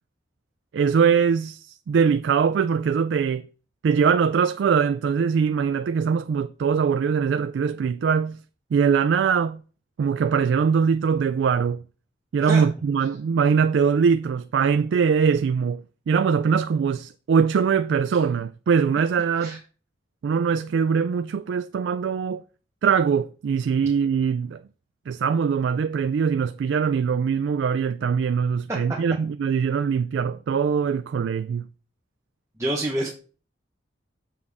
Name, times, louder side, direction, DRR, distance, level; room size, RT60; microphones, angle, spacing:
voice 1, 0.7-3.4 3.8-8.4 8.7-9.6 10.0-11.8 12.3-19.6 20.2-22.4 22.8-24.6 25.1-31.7, right 6 dB, 75° right, 0.3 m, -22 dB
voice 2, 32.6-33.1, right 1 dB, 15° right, 0.9 m, -27 dB
7.2 x 6.6 x 3.5 m
head